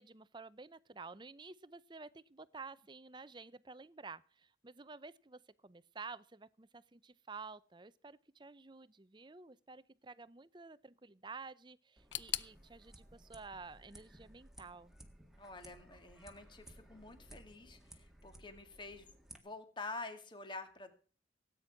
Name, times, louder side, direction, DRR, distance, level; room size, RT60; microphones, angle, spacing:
voice 1, 0.0-14.9, right 4 dB, 25° right, 0.6 m, -51 dB
sound 1, 12.0-19.4, right 1 dB, ahead, 1.7 m, -58 dB
sound 2, 12.1-15.0 15.2-16.1 16.3-16.4 17.3-17.4, left 14 dB, 80° left, 0.7 m, -46 dB
voice 2, 15.4-19.1 19.3-20.9, left 3 dB, 25° left, 2.1 m, -48 dB
17.5 x 9.4 x 5.9 m
head